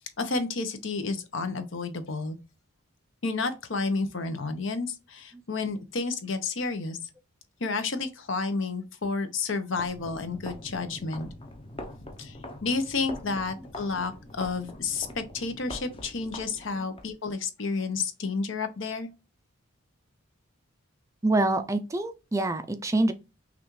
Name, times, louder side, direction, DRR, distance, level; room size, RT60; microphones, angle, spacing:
voice 1, 0.0-2.4 3.2-7.0 7.6-11.3 12.2-19.1, left 4 dB, 65° left, 0.8 m, -31 dB
sound 1, 9.7-17.1, left 1 dB, 25° left, 0.7 m, -43 dB
voice 2, 13.3-13.7 16.8-16.9 21.2-23.1, right 2 dB, 15° right, 0.4 m, -26 dB
6.0 x 2.4 x 3.1 m
head